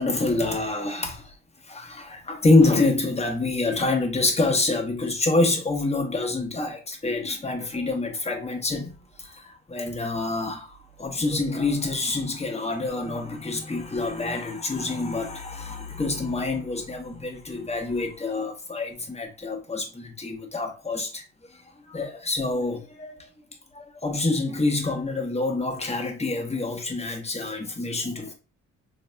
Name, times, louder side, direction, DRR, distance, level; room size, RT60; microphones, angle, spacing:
voice 1, 0.0-1.3 1.6-21.2 21.5-21.6 21.9-23.3 23.7-28.3, left 2 dB, 20° left, 1.0 m, -26 dB
3.9 x 2.7 x 2.2 m
cardioid pair, 90°, 30 cm